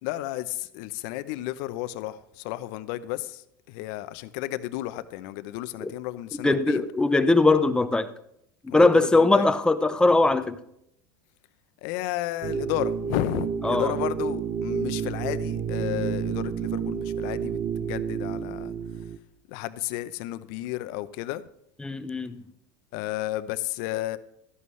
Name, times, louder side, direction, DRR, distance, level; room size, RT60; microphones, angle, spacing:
voice 1, 0.0-6.8 8.7-9.5 11.8-18.7 19.5-21.4 22.9-24.2, left 15 dB, 65° left, 0.7 m, -32 dB
voice 2, 6.4-8.1 8.7-10.6 13.6-13.9 21.8-22.4, left 2 dB, 10° left, 0.7 m, -21 dB
sound 1, 12.4-19.2, right 7 dB, 45° right, 0.7 m, -30 dB
12.5 x 11.0 x 3.2 m
supercardioid pair, 110°, 11 cm